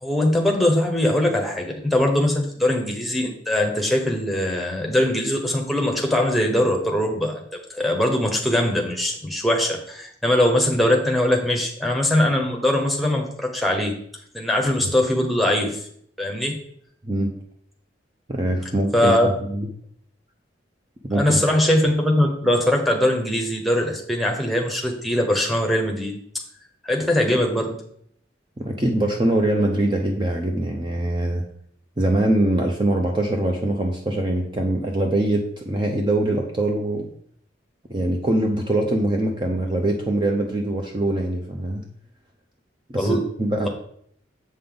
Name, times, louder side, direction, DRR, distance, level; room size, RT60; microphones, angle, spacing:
voice 1, 0.0-7.4 7.7-13.9 14.3-15.8 16.2-16.6 18.9-19.3 21.1-26.2 26.8-27.8 42.9-43.2, left 1 dB, ahead, 1 dB, 1.1 m, -21 dB
voice 2, 18.3-19.7 21.0-21.4 28.6-31.4 32.0-37.1 37.9-41.8 42.9-43.7, right 1 dB, 25° right, 2 dB, 0.6 m, -23 dB
7.7 x 5.4 x 3.9 m, 0.66 s
head